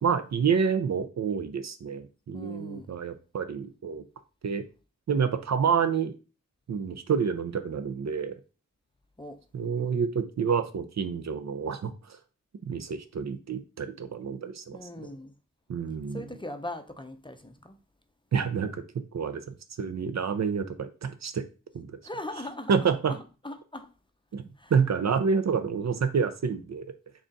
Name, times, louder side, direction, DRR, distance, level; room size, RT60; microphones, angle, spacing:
voice 1, 0.0-4.0 4.4-4.6 5.1-6.1 6.7-8.4 9.5-12.2 12.6-15.1 15.7-16.2 18.3-19.4 19.8-21.4 21.7-22.0 22.7-23.2 24.3-26.9, right 6 dB, 60° right, 0.5 m, -28 dB
voice 2, 2.3-2.9 9.2-9.4 14.7-15.3 16.1-17.7 22.0-22.7 23.1-23.9 24.6-24.7, left 1 dB, 15° left, 0.5 m, -40 dB
3.8 x 2.4 x 3.8 m
cardioid pair, 40°, 31 cm